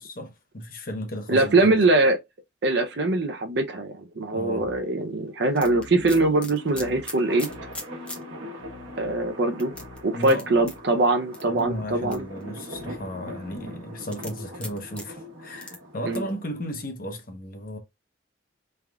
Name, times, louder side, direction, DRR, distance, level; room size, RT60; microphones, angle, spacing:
voice 1, 0.0-1.8 4.3-4.7 10.1-10.5 11.5-17.8, equal, 45° left, 0.8 m, -34 dB
voice 2, 1.3-2.2 2.6-7.5 9.0-9.7 10.0-12.2 16.1-16.2, right 2 dB, 60° right, 0.5 m, -22 dB
sound 1, 4.6-13.7, left 4 dB, 65° left, 1.0 m, -46 dB
sound 2, 5.5-8.2 8.7-8.8 9.6-10.7 11.3-11.6 12.1-12.8 14.1-15.0 15.6-15.7 16.1-16.3, left 1 dB, 5° left, 0.6 m, -38 dB
sound 3, 6.2-16.7, equal, 90° right, 1.1 m, -42 dB
3.4 x 2.3 x 3.4 m
head